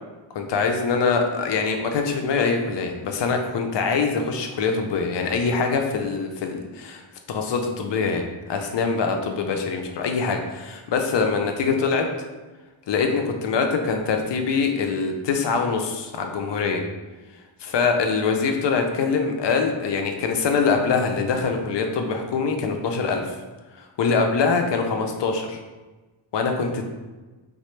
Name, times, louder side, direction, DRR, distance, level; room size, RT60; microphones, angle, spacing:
voice 1, 0.3-7.0 7.3-12.1 12.9-16.8 17.6-23.3 23.8-25.6 26.3-26.9, left 5 dB, 60° left, 4 dB, 0.5 m, -24 dB
3.1 x 2.2 x 3.1 m, 1.2 s
wide cardioid pair, 105°, 49 cm